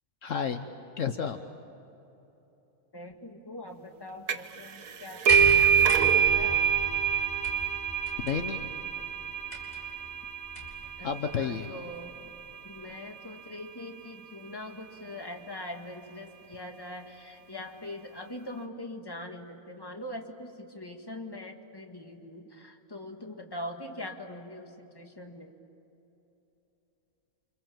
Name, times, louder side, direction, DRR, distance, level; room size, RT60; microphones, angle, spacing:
voice 1, 0.2-0.7 1.0-1.4 8.2-8.7 11.0-11.7, left 7 dB, 65° left, 7 dB, 1.3 m, -31 dB
voice 2, 2.9-6.7 11.0-12.2 12.6-25.5, left 1 dB, 15° left, 3 dB, 1.9 m, -42 dB
sound 1, 4.3-4.6 4.9-12.2, right 8 dB, 85° right, 1.4 m, -26 dB
sound 2, 5.3-10.9 12.0-12.1, equal, 40° left, 4.4 m, -38 dB
29.5 x 26.0 x 7.6 m, 3.0 s
omnidirectional pair, 1.5 m